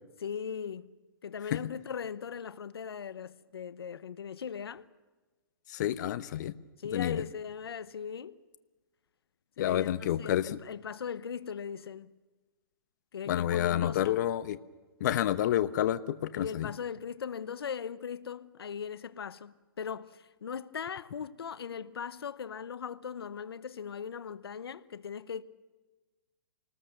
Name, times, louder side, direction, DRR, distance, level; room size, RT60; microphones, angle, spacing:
voice 1, 0.2-0.9 1.2-4.9 6.8-8.4 9.6-12.1 13.1-14.2 16.3-25.4, left 7 dB, 80° left, 0.9 m, -39 dB
voice 2, 5.7-6.5 6.9-7.2 9.6-10.5 13.3-14.6 15.0-16.7, left 12 dB, 50° left, 0.9 m, -29 dB
27.5 x 19.5 x 6.6 m
hypercardioid pair, 145°, 13 cm